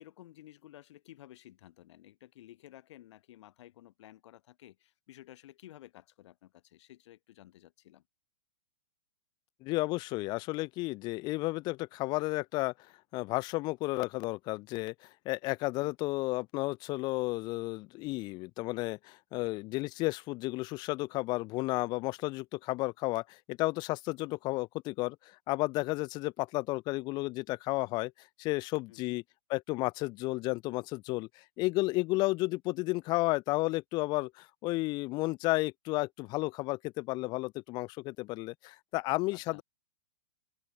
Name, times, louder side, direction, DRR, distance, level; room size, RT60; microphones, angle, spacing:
voice 1, 0.0-8.0 28.9-29.2 39.3-39.6, left 14 dB, 55° left, 4.1 m, -54 dB
voice 2, 9.6-12.7 13.1-14.9 15.3-25.2 25.5-28.1 28.4-29.2 29.5-39.6, left 22 dB, 25° left, 0.3 m, -32 dB
hypercardioid pair, 125°, 17 cm